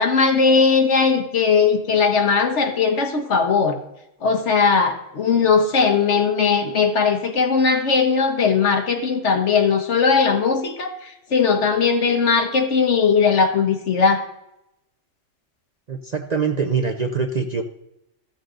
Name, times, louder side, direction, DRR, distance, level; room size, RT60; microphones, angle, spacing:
voice 1, 0.0-3.8 4.2-10.9 11.3-14.2, left 5 dB, 65° left, 5 dB, 1.5 m, -18 dB
voice 2, 15.9-17.6, right 5 dB, 45° right, 4 dB, 0.6 m, -23 dB
14.0 x 7.2 x 3.8 m, 0.86 s
omnidirectional pair, 1.3 m